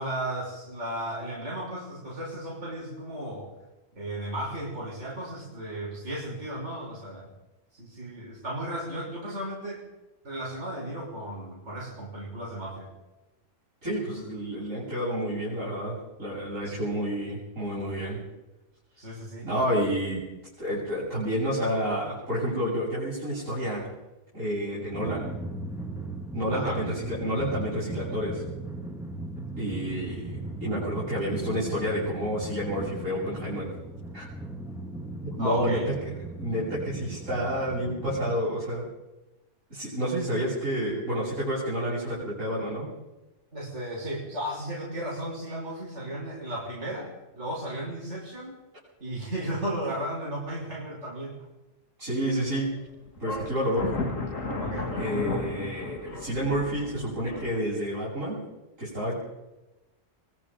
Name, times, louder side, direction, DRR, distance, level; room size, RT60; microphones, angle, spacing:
voice 1, 0.0-3.5 4.0-7.3 7.7-9.8 10.2-12.9 16.6-16.8 19.0-19.5 26.5-26.8 35.4-35.9 43.5-48.6 49.0-51.5 54.6-54.9, right 1 dB, 65° right, -4 dB, 6.2 m, -35 dB
voice 2, 13.8-18.2 19.4-20.3 20.6-23.9 24.3-25.3 26.3-28.4 29.6-33.7 34.1-34.2 35.2-35.9 36.4-38.8 39.7-42.9 52.0-52.7 53.2-54.0 54.9-58.4 58.8-59.2, equal, 85° right, -9 dB, 8.4 m, -29 dB
Drum, 24.9-38.4, right 2 dB, ahead, 2.1 m, -37 dB
sound 1, 52.4-52.8 53.2-57.6, left 3 dB, 90° left, 3.3 m, -34 dB
24.0 x 23.5 x 5.3 m, 1.0 s
omnidirectional pair, 1.3 m